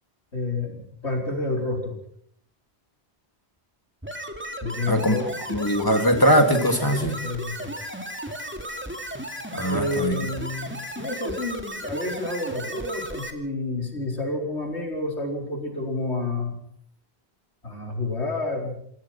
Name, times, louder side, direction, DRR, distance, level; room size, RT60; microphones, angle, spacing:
voice 1, 0.3-2.0 4.6-5.3 6.9-7.7 9.6-16.6 17.6-18.8, left 2 dB, 85° left, 1 dB, 4.9 m, -29 dB
sound 1, 4.0-13.3, equal, 10° right, 2.5 m, -35 dB
voice 2, 5.5-7.1 9.5-10.1, equal, 20° left, 5 dB, 2.8 m, -21 dB
27.0 x 17.5 x 6.0 m, 0.66 s
omnidirectional pair, 1.1 m